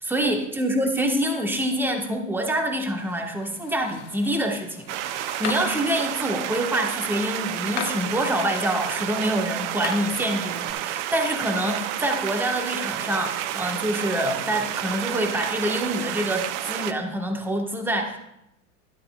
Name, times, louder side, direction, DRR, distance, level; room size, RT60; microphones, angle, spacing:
voice 1, 0.0-18.2, right 1 dB, 5° right, 3 dB, 1.4 m, -26 dB
sound 1, 2.2-10.7, left 8 dB, 40° left, 1.4 m, -40 dB
sound 2, 4.9-16.9, right 12 dB, 60° right, 0.7 m, -30 dB
12.5 x 11.5 x 2.4 m, 0.81 s
hypercardioid pair, 100°, 40 cm